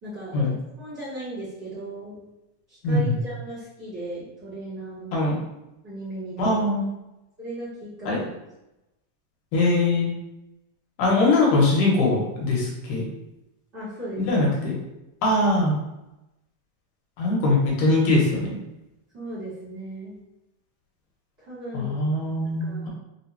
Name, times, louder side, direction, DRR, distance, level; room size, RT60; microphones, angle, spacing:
voice 1, 0.0-2.2 2.7-5.2 5.8-6.5 7.4-8.3 13.7-14.2 19.1-20.2 21.4-21.9 22.6-22.9, right 1 dB, 45° right, -11 dB, 0.8 m, -36 dB
voice 2, 2.8-3.2 5.1-5.4 6.4-6.9 8.1-8.2 9.5-10.1 11.0-13.1 14.2-14.8 15.2-15.8 17.2-18.6 21.7-22.9, left 2 dB, 85° left, -3 dB, 2.5 m, -21 dB
5.1 x 2.1 x 2.7 m, 0.93 s
omnidirectional pair, 3.7 m